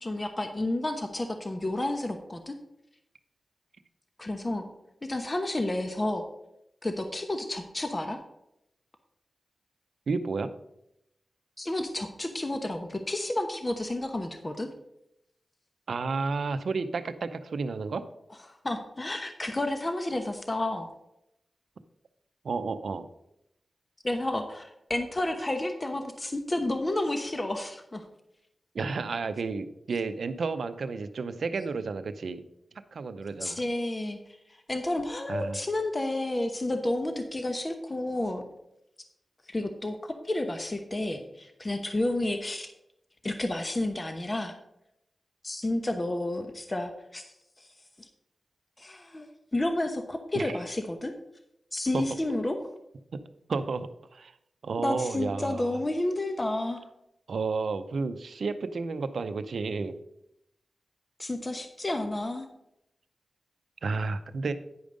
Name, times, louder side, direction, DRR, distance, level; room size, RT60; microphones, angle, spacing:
voice 1, 0.0-2.6 4.2-4.7 5.1-6.2 6.8-8.2 11.6-14.7 18.5-20.9 24.0-28.0 33.4-34.2 34.7-38.4 39.5-42.7 43.2-44.6 45.4-47.3 48.8-51.1 51.7-52.6 54.8-56.8 61.2-62.5, left 1 dB, 30° left, 6 dB, 1.0 m, -31 dB
voice 2, 10.1-10.5 15.9-18.0 22.4-23.1 28.7-32.4 32.9-33.6 35.3-35.6 50.3-50.5 51.9-52.0 53.1-53.2 53.5-54.3 54.6-55.7 57.3-59.9 63.8-64.5, right 4 dB, 80° right, 10 dB, 0.6 m, -31 dB
9.6 x 5.2 x 5.1 m, 0.82 s
cardioid pair, 55°, 0 cm